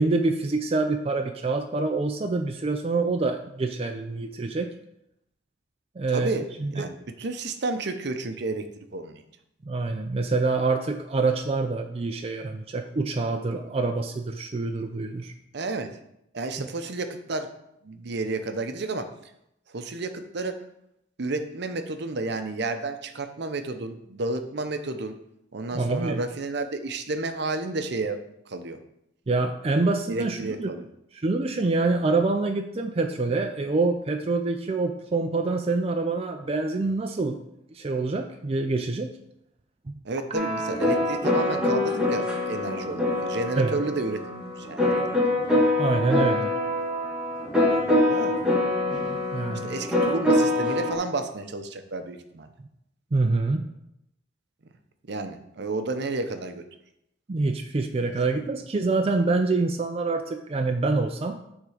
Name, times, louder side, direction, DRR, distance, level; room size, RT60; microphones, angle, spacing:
voice 1, 0.0-4.7 6.0-6.3 6.6-6.9 9.6-15.3 16.6-16.7 25.7-26.2 29.3-30.7 31.2-37.4 37.7-39.1 39.9-40.0 43.6-43.8 45.8-46.5 49.3-49.7 53.1-53.7 57.3-61.4, right 3 dB, 30° right, 5 dB, 0.4 m, -26 dB
voice 2, 6.1-6.5 6.7-8.7 8.9-9.2 15.5-15.9 16.3-17.5 17.8-19.1 19.7-20.6 21.2-25.2 25.5-28.2 28.5-28.8 30.1-30.8 40.0-45.3 48.1-48.4 49.6-52.5 55.1-56.6 58.0-58.4, right 2 dB, 65° right, 8 dB, 0.7 m, -31 dB
sound 1, 40.3-50.9, left 1 dB, 5° right, 1.5 m, -24 dB
9.5 x 3.7 x 5.0 m, 0.79 s
head